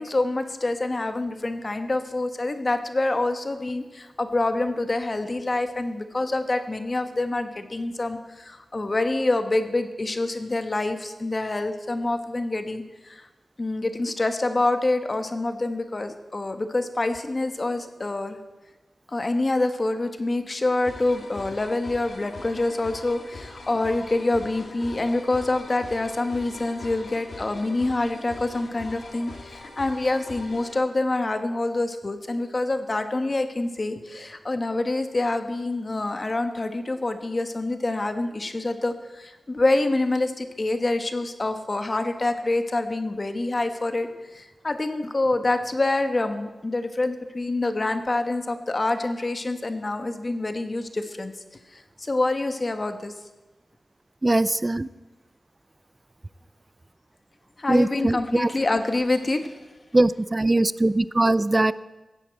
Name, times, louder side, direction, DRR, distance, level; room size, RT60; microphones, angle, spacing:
voice 1, 0.0-13.3 13.6-18.4 19.1-53.1 57.6-59.5, left 2 dB, 35° left, 8 dB, 1.3 m, -26 dB
sound 1, 20.8-30.8, left 2 dB, 70° left, 2.7 m, -42 dB
voice 2, 54.2-54.9 57.7-58.5 59.9-61.7, right 2 dB, 25° right, 17 dB, 0.5 m, -21 dB
15.5 x 8.7 x 8.0 m, 1.1 s
wide cardioid pair, 95°, 0 cm